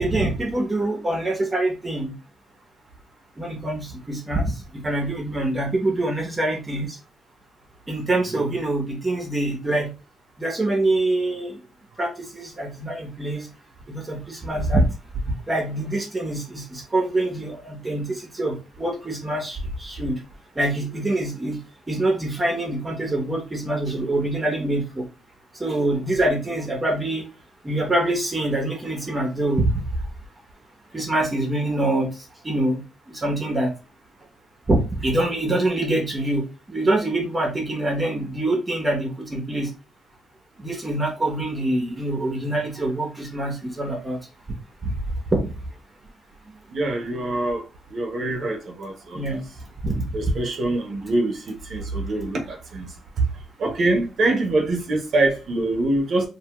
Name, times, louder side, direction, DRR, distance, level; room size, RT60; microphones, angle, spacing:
voice 1, 0.0-2.1 3.4-7.0 7.9-9.9 10.4-11.6 12.0-13.5 13.9-14.9 15.5-20.2 20.6-21.6 21.9-25.1 25.6-27.2 27.6-29.7 30.9-32.8 33.1-33.7 34.7-39.7 40.6-44.2 44.8-44.9 45.3-45.5 49.1-49.4 49.8-50.0, right 1 dB, 20° right, 0.9 m, -25 dB
voice 2, 46.7-47.6 47.9-49.2 50.1-53.2 53.6-56.3, right 2 dB, 55° right, 0.8 m, -24 dB
2.7 x 2.3 x 2.9 m
cardioid pair, 90°, 0 cm